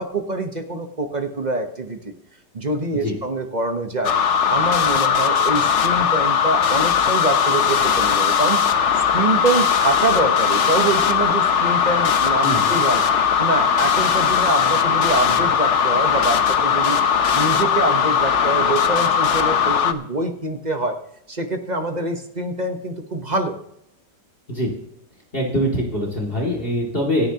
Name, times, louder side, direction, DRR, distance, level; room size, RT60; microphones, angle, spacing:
voice 1, 0.0-2.0 2.5-4.1 4.5-8.6 9.1-13.0 13.4-17.0 17.3-21.0 21.3-23.6, right 2 dB, 30° right, 4 dB, 0.9 m, -25 dB
sound 1, 4.0-19.9, left 7 dB, 55° left, 0.9 m, -19 dB
voice 2, 12.4-12.7 24.5-24.7 25.3-27.3, equal, 30° left, 0 dB, 2.5 m, -23 dB
26.5 x 9.9 x 2.9 m, 0.77 s
omnidirectional pair, 1.9 m